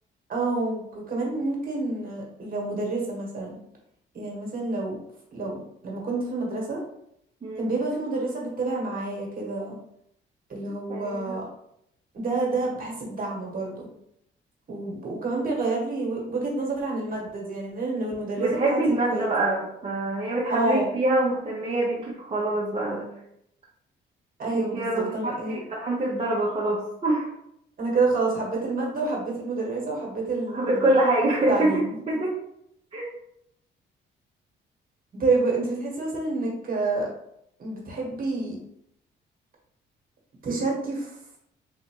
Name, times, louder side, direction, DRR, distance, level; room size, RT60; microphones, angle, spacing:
voice 1, 0.3-3.6 4.1-5.0 5.3-6.8 7.5-9.8 10.5-11.4 12.1-13.9 14.7-19.3 20.5-20.9 24.4-25.6 27.8-30.9 31.5-32.0 35.1-37.1 37.6-38.6 40.4-41.2, right 3 dB, 45° right, -2 dB, 1.4 m, -28 dB
voice 2, 10.9-11.3 18.4-23.1 24.5-27.3 30.5-32.3 32.9-33.1, right 2 dB, 30° right, -6 dB, 0.8 m, -25 dB
3.5 x 2.7 x 2.9 m, 0.75 s
cardioid pair, 90°, 20 cm